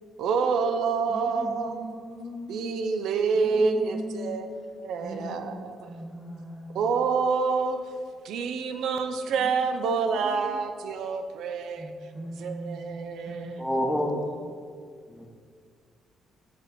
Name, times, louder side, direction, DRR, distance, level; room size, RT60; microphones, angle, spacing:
voice 1, 0.2-1.8 2.5-4.5 4.8-5.9 6.7-7.9 8.2-11.9 12.4-13.8, right 5 dB, 75° right, 7 dB, 0.4 m, -27 dB
voice 2, 1.1-2.6 3.3-4.4 5.0-5.5 5.8-6.9 9.4-10.6 11.8-12.8 13.2-14.4, equal, 30° right, -5 dB, 1.5 m, -40 dB
voice 3, 13.6-14.2 15.1-15.3, equal, 5° left, 1 dB, 0.8 m, -27 dB
5.6 x 4.2 x 4.3 m, 2.1 s
cardioid pair, 90°, 0 cm